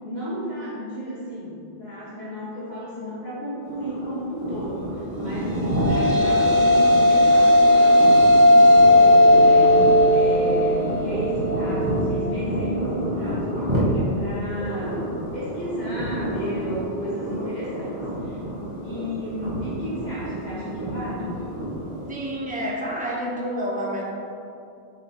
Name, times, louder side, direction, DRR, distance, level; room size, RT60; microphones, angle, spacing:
voice 1, 0.0-9.7 10.1-15.1 15.3-18.4 18.8-21.7, equal, 45° left, -10 dB, 2.0 m, -33 dB
sound 1, 3.6-22.2, equal, 25° right, 1.9 m, -30 dB
sound 2, 5.4-14.0, left 1 dB, 60° right, 0.9 m, -17 dB
voice 2, 22.1-24.1, equal, 10° right, -3 dB, 1.0 m, -29 dB
7.4 x 5.2 x 4.5 m, 2.6 s
omnidirectional pair, 1.0 m